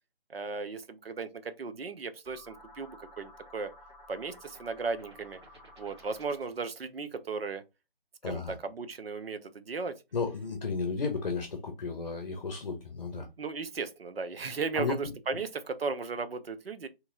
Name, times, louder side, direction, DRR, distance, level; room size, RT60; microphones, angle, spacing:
voice 1, 0.3-3.7 4.1-5.4 5.8-7.6 8.2-10.0 13.4-16.9, right 4 dB, 70° right, 0.7 m, -36 dB
sound 1, 2.2-6.6, left 1 dB, 25° right, 1.3 m, -53 dB
voice 2, 8.2-8.6 10.1-13.3 14.7-15.0 15.3-15.4, left 4 dB, 45° left, 0.8 m, -33 dB
2.9 x 2.7 x 3.7 m
figure-of-eight pair, 160°, 31 cm